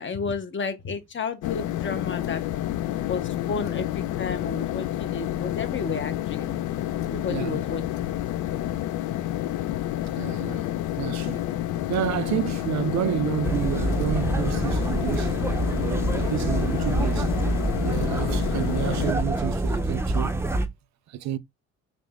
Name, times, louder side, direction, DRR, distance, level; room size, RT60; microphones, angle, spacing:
voice 1, 0.0-2.4 3.1-6.6 7.1-7.8 17.2-17.3, left 5 dB, 40° left, 0.9 m, -32 dB
sound 1, 1.4-19.1, left 13 dB, 80° left, 0.4 m, -29 dB
voice 2, 7.3-7.6 10.2-10.7 11.0-11.4 11.9-15.4 15.7-17.3 17.8-20.4 21.1-21.4, right 11 dB, 65° right, 0.5 m, -30 dB
sound 2, 13.4-20.7, right 2 dB, 10° right, 0.6 m, -26 dB
5.1 x 2.1 x 3.5 m
cardioid pair, 90°, 30 cm